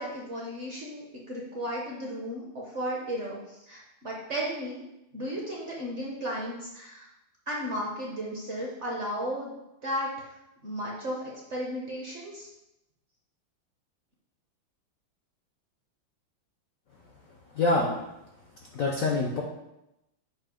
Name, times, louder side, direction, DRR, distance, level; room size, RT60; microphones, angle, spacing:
voice 1, 0.0-4.8 5.1-7.1 7.5-9.5 9.8-10.3 10.6-12.5, equal, 45° right, -3 dB, 0.9 m, -34 dB
voice 2, 17.5-17.9 18.7-19.4, left 2 dB, 70° left, -1 dB, 0.8 m, -25 dB
7.6 x 2.7 x 5.0 m, 0.90 s
omnidirectional pair, 2.3 m